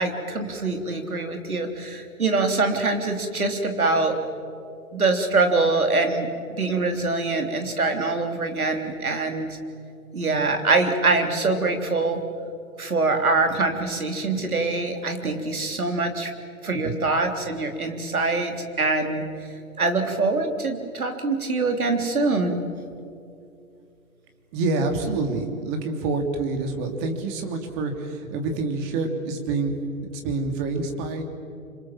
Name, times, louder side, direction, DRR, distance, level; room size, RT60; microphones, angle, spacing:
voice 1, 0.0-4.2 4.9-9.6 10.1-12.2 12.8-16.3 16.6-19.2 19.8-22.6, right 3 dB, 80° right, 5 dB, 3.5 m, -24 dB
voice 2, 24.5-31.2, right 3 dB, 30° right, 4 dB, 3.2 m, -27 dB
28.0 x 25.5 x 7.5 m, 2.6 s
figure-of-eight pair, 125°, 43 cm